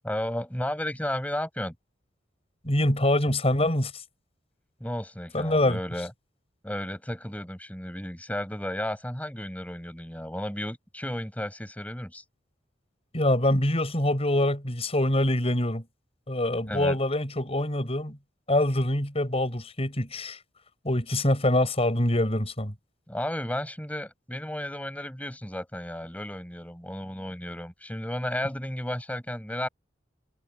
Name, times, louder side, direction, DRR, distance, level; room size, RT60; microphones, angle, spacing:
voice 1, 0.0-1.7 4.8-6.1 6.6-12.2 16.7-17.0 23.1-29.7, left 1 dB, 10° left, 7.3 m, -33 dB
voice 2, 2.6-3.9 5.3-5.8 13.1-15.8 16.3-18.2 18.5-20.4 20.8-22.7, left 1 dB, 35° left, 6.6 m, -25 dB
head